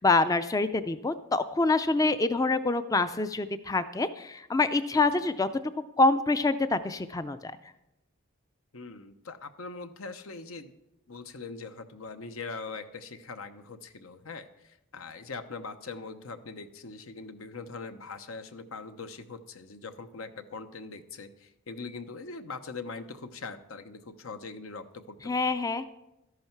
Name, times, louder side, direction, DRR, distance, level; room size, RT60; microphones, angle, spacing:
voice 1, 0.0-5.5 6.0-7.5 25.2-25.8, left 3 dB, 15° left, 12 dB, 0.3 m, -26 dB
voice 2, 4.9-5.3 8.7-10.7 11.1-25.5, left 4 dB, 85° left, 9 dB, 0.9 m, -42 dB
13.0 x 11.0 x 4.5 m, 0.90 s
head